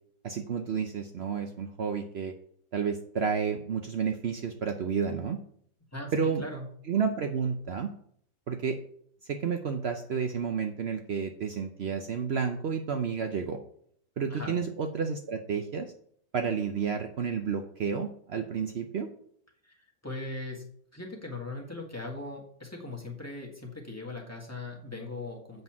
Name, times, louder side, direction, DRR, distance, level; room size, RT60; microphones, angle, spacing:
voice 1, 0.2-2.3 2.7-5.4 6.1-6.4 6.9-7.9 8.5-8.8 9.3-13.6 14.2-15.9 16.3-19.1, right 6 dB, 80° right, 6 dB, 0.5 m, -31 dB
voice 2, 5.9-6.7 14.3-14.6 19.6-20.6 20.9-25.6, left 2 dB, 10° left, -2 dB, 1.5 m, -39 dB
7.9 x 5.6 x 5.9 m, 0.64 s
omnidirectional pair, 2.0 m